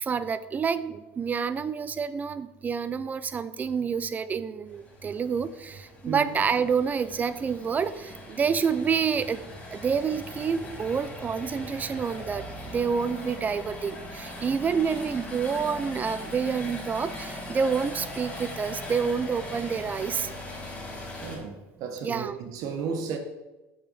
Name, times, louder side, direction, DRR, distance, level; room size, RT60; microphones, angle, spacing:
voice 1, 0.0-9.4 9.7-12.4 12.7-20.3 22.0-22.4, right 6 dB, 25° right, 0.4 m, -28 dB
sound 1, 4.7-21.4, left 1 dB, 20° left, 2.1 m, -40 dB
voice 2, 21.2-23.2, right 6 dB, 60° right, 1.0 m, -33 dB
6.2 x 6.0 x 4.1 m
supercardioid pair, 105°, 7 cm